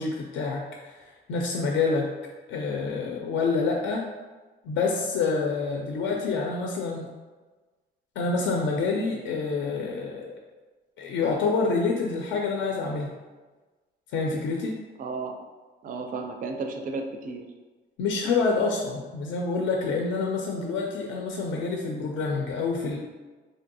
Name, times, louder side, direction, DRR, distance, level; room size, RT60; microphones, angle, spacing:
voice 1, 0.0-2.1 2.5-4.1 4.6-7.1 8.2-10.4 11.0-13.1 14.1-14.8 18.0-23.0, left 4 dB, 75° left, 0 dB, 0.4 m, -27 dB
voice 2, 15.0-15.4 15.8-17.5, right 3 dB, 45° right, 4 dB, 0.4 m, -33 dB
3.3 x 2.6 x 2.6 m, 1.3 s
cardioid pair, 90°, 20 cm